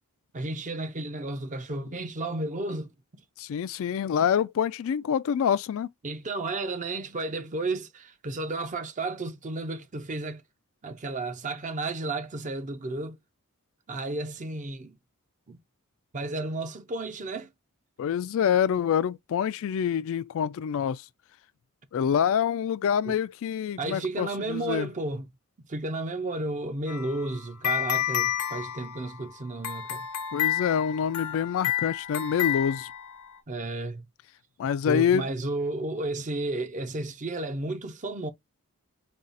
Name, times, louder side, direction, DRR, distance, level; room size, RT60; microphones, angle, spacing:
voice 1, 0.3-2.9 6.0-10.4 10.8-13.2 13.9-15.0 15.5-15.6 16.1-17.5 23.1-23.2 23.8-25.3 25.7-30.1 33.5-34.0 34.8-38.3, right 2 dB, 35° right, 0.6 m, -32 dB
voice 2, 3.4-5.9 18.0-21.0 21.9-24.9 30.3-32.9 34.6-35.3, left 8 dB, 60° left, 0.3 m, -26 dB
sound 1, 26.9-33.4, left 11 dB, 80° left, 0.8 m, -31 dB
5.3 x 2.3 x 2.5 m
head